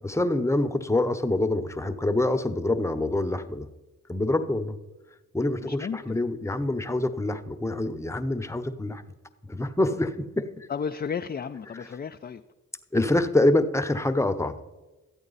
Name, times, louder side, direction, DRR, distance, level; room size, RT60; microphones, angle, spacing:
voice 1, 0.0-3.7 4.1-4.8 5.3-9.0 9.4-10.7 12.9-14.6, left 2 dB, 10° left, 0.9 m, -26 dB
voice 2, 5.6-6.2 10.7-12.4, left 6 dB, 30° left, 0.4 m, -33 dB
13.5 x 8.7 x 4.0 m
supercardioid pair, 45°, 34 cm